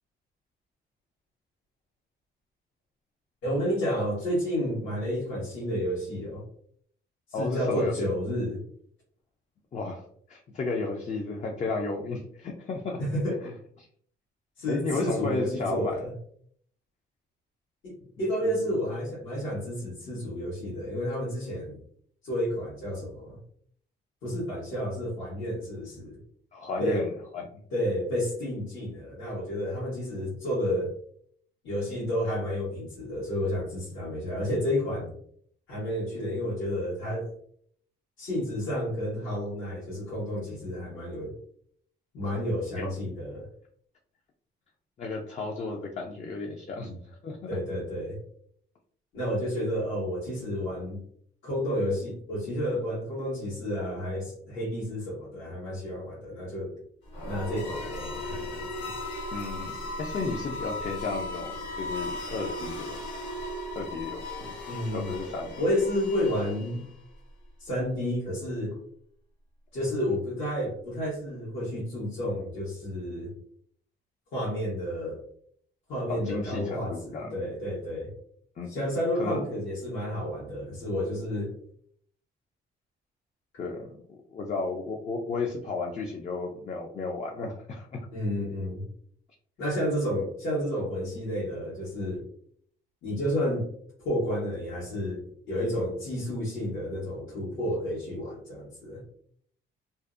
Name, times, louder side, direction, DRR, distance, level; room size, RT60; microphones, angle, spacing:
voice 1, 3.4-6.4 7.4-8.6 13.0-13.4 14.6-16.1 17.8-21.8 22.2-23.4 24.2-26.2 26.8-27.1 27.7-30.9 31.6-35.1 35.7-37.3 38.2-41.3 42.1-43.5 47.5-48.2 49.1-51.0 51.4-56.8 57.2-58.9 64.7-65.1 65.6-66.9 67.6-68.7 69.7-73.3 74.3-75.2 75.9-78.1 78.7-81.5 88.1-88.8 89.6-92.2 93.0-93.7 94.0-99.0, equal, 80° left, -8 dB, 1.1 m, -31 dB
voice 2, 7.3-8.1 9.7-13.0 13.4-13.5 13.8-13.9 14.7-16.0 18.4-18.7 26.5-27.6 42.3-42.4 42.8-42.9 45.0-47.6 59.3-63.0 63.7-64.5 64.9-65.5 76.1-77.4 78.6-78.7 79.1-79.4 83.6-88.1, left 3 dB, 35° left, 1 dB, 0.4 m, -33 dB
sound 1, 57.1-67.0, left 1 dB, 60° left, 1.4 m, -37 dB
2.6 x 2.0 x 2.4 m, 0.62 s
cardioid pair, 90°, 20 cm